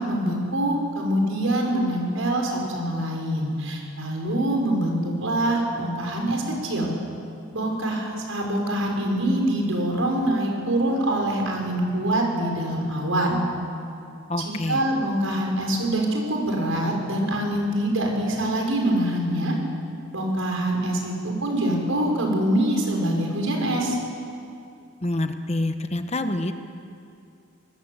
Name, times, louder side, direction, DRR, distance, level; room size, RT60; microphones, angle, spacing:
voice 1, 0.0-6.9 7.5-13.4 14.4-19.6 20.1-24.0, right 1 dB, 80° right, 1 dB, 5.8 m, -24 dB
voice 2, 14.3-14.8 25.0-26.5, left 1 dB, 30° left, 8 dB, 1.1 m, -27 dB
24.5 x 20.0 x 8.1 m, 2.6 s
head